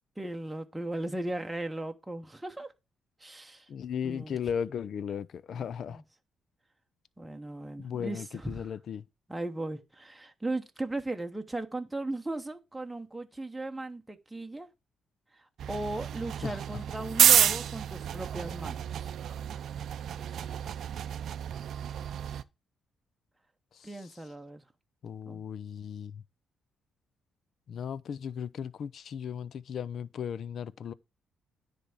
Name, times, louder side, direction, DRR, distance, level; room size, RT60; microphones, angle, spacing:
voice 1, 0.2-2.7 3.2-3.7 4.0-4.4 5.9-6.0 7.2-8.7 9.3-14.7 15.3-19.1 20.3-20.6 23.8-24.6 25.3-25.4, right 2 dB, 10° right, 1.0 m, -37 dB
voice 2, 3.7-6.0 7.8-9.1 16.4-16.8 23.7-24.2 25.0-26.2 27.7-30.9, left 8 dB, 60° left, 0.5 m, -36 dB
sound 1, 15.6-22.4, right 9 dB, 65° right, 0.5 m, -29 dB
10.0 x 3.5 x 7.1 m
cardioid pair, 90°, 0 cm